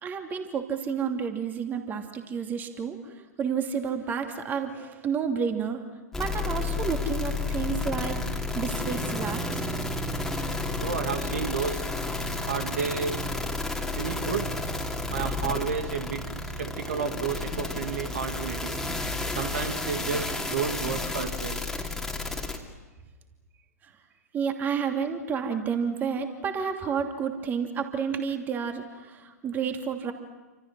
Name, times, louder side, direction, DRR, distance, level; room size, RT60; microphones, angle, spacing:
voice 1, 0.0-5.8 6.2-9.7 24.3-30.1, right 6 dB, 20° right, 5 dB, 2.8 m, -30 dB
sound 1, 6.1-22.6, left 2 dB, 5° left, 2.8 m, -31 dB
voice 2, 10.8-11.9 12.5-13.2 14.0-14.6 15.1-16.2 16.6-18.8 19.3-21.6, right 6 dB, 55° right, 6 dB, 2.2 m, -31 dB
29.5 x 26.0 x 6.3 m, 1.2 s
figure-of-eight pair, 110°, 9 cm